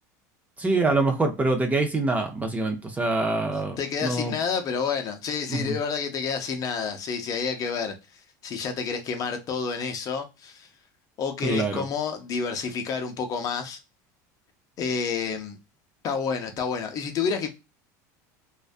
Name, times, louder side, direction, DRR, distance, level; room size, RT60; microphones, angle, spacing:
voice 1, 0.6-4.3 5.5-5.7 11.4-11.8, right 2 dB, 15° right, 0.5 m, -25 dB
voice 2, 3.8-7.9 8.4-10.7 11.2-13.8 14.8-15.6 16.0-17.5, left 6 dB, 40° left, 0.6 m, -29 dB
2.5 x 2.1 x 2.4 m
supercardioid pair, 115°, 9 cm